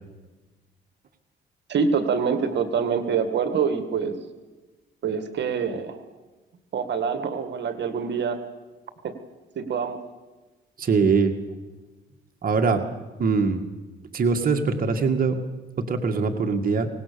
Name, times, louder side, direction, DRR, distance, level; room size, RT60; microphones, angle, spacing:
voice 1, 1.7-4.2 5.0-6.0 6.7-8.4 9.0-9.1 9.6-10.0, right 6 dB, 60° right, 9 dB, 2.1 m, -25 dB
voice 2, 10.8-11.4 12.4-12.8 13.2-13.6 14.1-15.4 15.8-16.9, right 4 dB, 45° right, 4 dB, 2.1 m, -22 dB
24.5 x 19.0 x 7.0 m, 1.2 s
cardioid pair, 90°, 20 cm